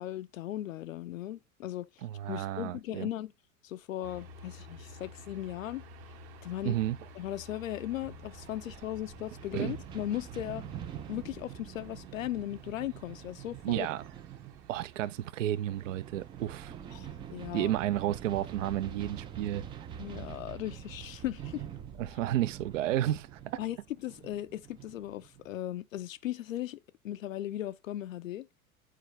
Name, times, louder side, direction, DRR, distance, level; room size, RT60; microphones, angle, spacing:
voice 1, 0.0-3.3 3.6-5.9 6.4-6.8 7.2-10.6 11.1-13.9 16.9-17.7 20.0-21.6 23.6-23.8 24.0-26.8 27.0-28.5, left 13 dB, 70° left, 0.5 m, -37 dB
voice 2, 2.0-3.1 6.6-7.0 9.5-9.7 13.6-14.0 14.7-16.7 17.5-19.9 22.0-23.6, right 13 dB, 65° right, 0.6 m, -32 dB
sound 1, 4.0-20.4, equal, 45° right, 1.2 m, -53 dB
sound 2, 8.0-25.5, right 9 dB, 15° right, 0.3 m, -46 dB
8.3 x 4.7 x 3.1 m
figure-of-eight pair, 80°, 42 cm